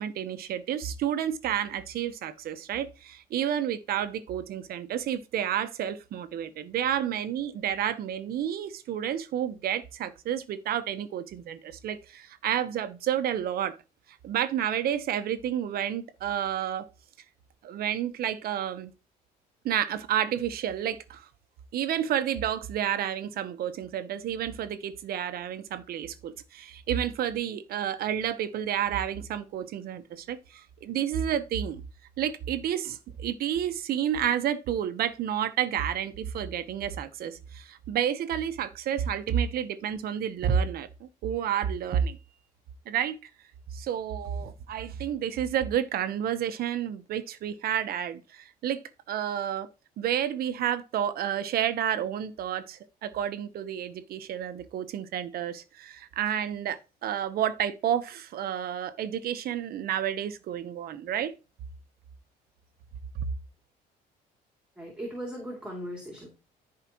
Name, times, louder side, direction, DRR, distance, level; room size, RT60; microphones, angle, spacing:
voice 1, 0.0-13.8 14.2-16.9 17.6-18.9 19.6-21.2 21.7-31.8 32.2-42.2 42.9-43.2 43.7-48.8 49.1-49.7 50.0-61.3, right 9 dB, 65° right, 1.1 m, -30 dB
voice 2, 64.8-66.3, equal, 5° right, 3.0 m, -38 dB
14.0 x 4.9 x 3.1 m
cardioid pair, 110°, 17 cm